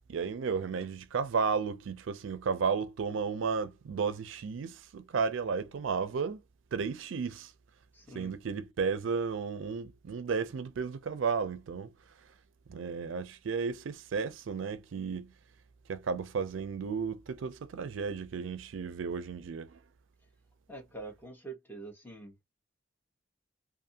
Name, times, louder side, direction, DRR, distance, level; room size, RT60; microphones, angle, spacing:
voice 1, 0.1-6.4 6.7-7.5 8.1-11.9 12.7-15.3 15.9-19.8, right 5 dB, 75° right, 0.4 m, -33 dB
voice 2, 7.9-8.3 20.7-22.5, right 3 dB, 10° left, 1.0 m, -45 dB
2.5 x 2.4 x 2.7 m
head